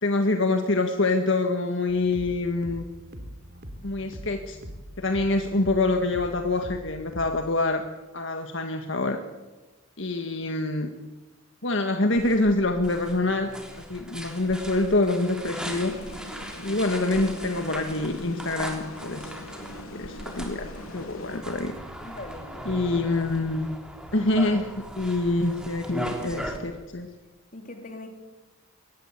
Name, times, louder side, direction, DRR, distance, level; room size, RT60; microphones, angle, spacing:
voice 1, 0.0-2.8 3.8-4.6 5.0-7.8 8.1-9.2 10.0-10.9 11.6-13.5 13.8-15.9 16.6-19.3 19.9-21.7 22.7-23.7 24.1-27.1, left 2 dB, 60° left, 5 dB, 1.7 m, -26 dB
sound 1, 1.9-7.5, equal, 50° right, 3.2 m, -42 dB
sound 2, 12.1-26.6, right 1 dB, 5° right, 3.4 m, -39 dB
sound 3, 15.4-22.0, left 1 dB, 85° left, 3.6 m, -42 dB
voice 2, 22.0-22.9 27.5-28.1, left 2 dB, 40° left, 5 dB, 3.6 m, -41 dB
23.5 x 19.0 x 8.4 m, 1.2 s
head